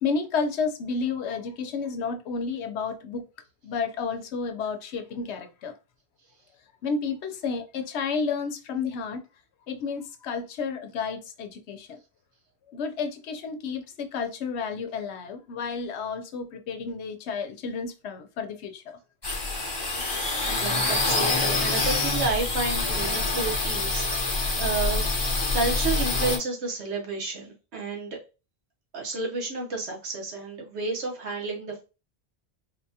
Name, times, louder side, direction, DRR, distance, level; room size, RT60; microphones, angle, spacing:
voice 1, 0.0-3.3 3.6-5.7 6.8-9.2 9.7-12.0 12.7-19.0, left 5 dB, 90° left, 0.9 m, -31 dB
sound 1, 19.2-26.4, left 2 dB, 25° left, 0.7 m, -26 dB
voice 2, 20.5-25.1 25.5-28.2 28.9-31.8, right 3 dB, 85° right, 1.3 m, -31 dB
4.0 x 2.3 x 2.7 m
omnidirectional pair, 1.1 m